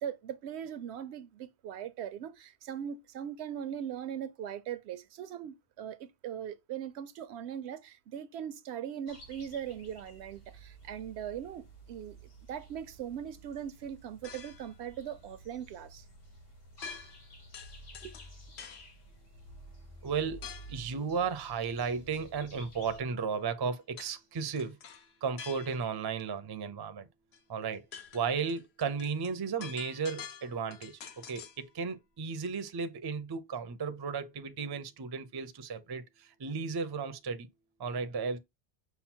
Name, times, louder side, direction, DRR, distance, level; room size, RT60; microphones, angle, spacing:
voice 1, 0.0-12.2 12.5-16.0 18.0-18.1, right 9 dB, 85° right, 0.8 m, -40 dB
sound 1, 9.1-23.0, right 2 dB, 65° left, 1.5 m, -52 dB
sound 2, 14.2-14.8 16.8-17.3 17.5-18.9 20.4-20.8 24.0-24.2 24.6-26.0 27.3-27.4 27.7-31.6, left 7 dB, 85° left, 1.0 m, -47 dB
voice 2, 20.0-20.4 20.7-24.8 25.2-27.1 27.5-27.8 28.1-31.0 31.3-37.5 37.8-38.4, right 5 dB, 40° right, 0.3 m, -34 dB
5.6 x 2.0 x 4.3 m
omnidirectional pair, 1.1 m